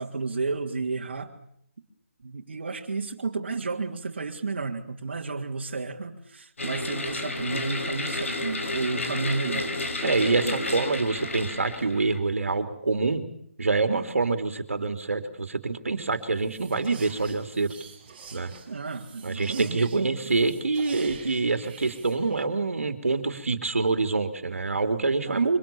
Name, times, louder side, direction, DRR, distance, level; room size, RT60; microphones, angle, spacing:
voice 1, 0.0-1.3 2.2-9.7 10.4-10.6 18.7-20.4 25.2-25.5, right 4 dB, 55° right, 0 dB, 3.1 m, -32 dB
sound 1, 6.6-12.2, left 2 dB, 75° left, 5.9 m, -31 dB
voice 2, 10.0-13.2 13.6-17.8 18.3-18.5 19.2-25.6, right 3 dB, 80° right, 8 dB, 3.2 m, -26 dB
sound 2, 16.1-22.4, right 5 dB, 15° right, 4.5 m, -47 dB
26.0 x 25.5 x 7.1 m, 0.68 s
hypercardioid pair, 180°, 7 cm